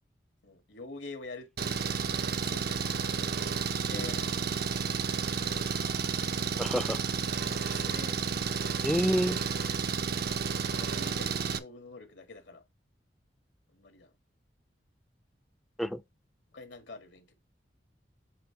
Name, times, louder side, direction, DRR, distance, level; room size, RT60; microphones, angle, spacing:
voice 1, 0.4-1.9 2.4-3.4 3.7-4.5 7.4-8.2 10.8-12.6 13.7-14.1 16.5-17.3, left 3 dB, 80° left, 1.7 m, -46 dB
Engine, 1.6-11.6, right 5 dB, 60° right, 0.6 m, -31 dB
voice 2, 6.6-7.0 8.8-9.4 15.8-16.0, equal, ahead, 0.4 m, -28 dB
7.7 x 3.2 x 4.5 m
head